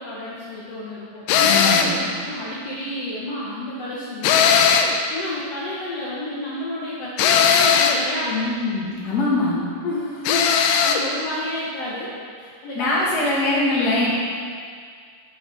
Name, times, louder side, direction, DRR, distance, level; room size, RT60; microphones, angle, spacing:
voice 1, 0.0-4.5 5.1-8.4 9.8-13.2, left 1 dB, 65° left, -7 dB, 1.6 m, -31 dB
sound 1, 1.3-2.0 4.2-5.0 7.2-8.0 10.2-11.0, left 7 dB, 85° left, 2.0 m, -17 dB
voice 2, 1.4-2.0 8.3-9.6 12.7-14.2, left 2 dB, 30° left, -8 dB, 2.1 m, -22 dB
9.7 x 7.5 x 4.1 m, 2.1 s
omnidirectional pair, 4.3 m